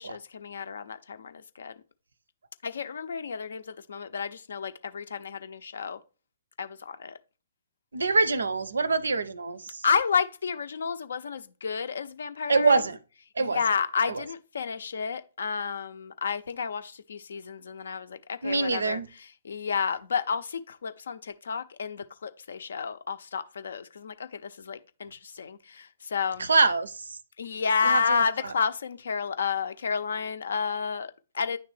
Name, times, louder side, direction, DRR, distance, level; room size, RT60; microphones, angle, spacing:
voice 1, 0.0-1.7 2.6-6.0 6.6-7.2 9.8-12.8 13.4-26.5 27.4-31.6, left 6 dB, 65° left, 0.5 m, -31 dB
voice 2, 7.9-9.8 12.5-13.0 13.4-13.6 14.1-14.2 18.4-19.1 26.4-27.0 27.8-28.2, right 3 dB, 75° right, 0.5 m, -25 dB
9.6 x 3.3 x 3.2 m
figure-of-eight pair, 125°, 0 cm